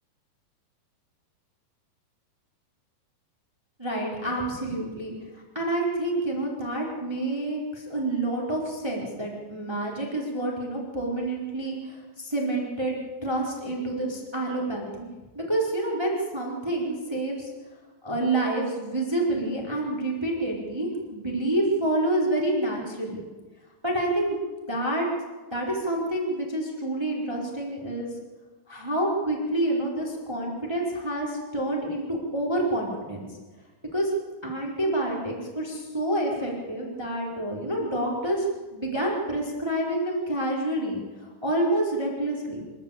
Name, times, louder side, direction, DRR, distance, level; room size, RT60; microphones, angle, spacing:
voice 1, 3.8-5.1 5.5-13.0 13.2-15.1 15.3-17.5 18.0-23.2 23.8-24.4 24.7-25.1 25.5-28.1 28.7-33.3 33.9-34.1 34.4-38.4 38.7-41.0 41.4-42.6, right 1 dB, 5° right, -2 dB, 4.1 m, -28 dB
28.0 x 12.5 x 8.6 m, 1.3 s
omnidirectional pair, 4.4 m